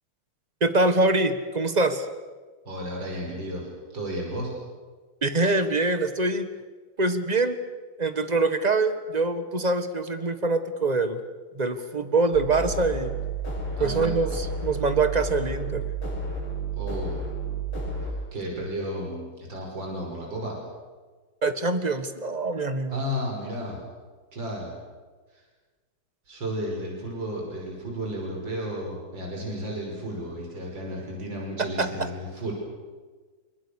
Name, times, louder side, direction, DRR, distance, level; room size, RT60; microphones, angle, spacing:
voice 1, 0.6-2.1 5.2-6.5 7.0-7.6 8.0-11.2 11.5-13.1 13.8-15.8 21.4-23.0 31.8-31.9, right 3 dB, 20° right, 10 dB, 1.5 m, -24 dB
voice 2, 2.7-4.5 13.8-14.1 16.7-17.2 18.0-20.6 22.9-23.8 24.3-24.7 26.3-32.5, equal, 55° right, 0 dB, 6.4 m, -33 dB
sound 1, 12.3-18.1, right 3 dB, 80° left, 8.8 m, -31 dB
28.0 x 25.0 x 6.6 m, 1.4 s
omnidirectional pair, 2.4 m